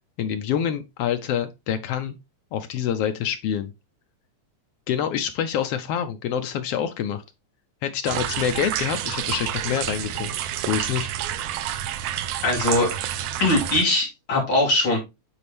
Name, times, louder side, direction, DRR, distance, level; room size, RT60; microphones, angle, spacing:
voice 1, 0.2-2.1 2.5-3.7 4.9-7.2 7.8-10.3 10.7-11.1, left 9 dB, 80° left, 1.4 m, -26 dB
sound 1, 8.1-13.8, right 11 dB, 80° right, 1.4 m, -29 dB
voice 2, 12.4-12.9 13.4-15.0, left 2 dB, 45° left, 3.7 m, -21 dB
9.5 x 4.3 x 3.4 m
omnidirectional pair, 3.4 m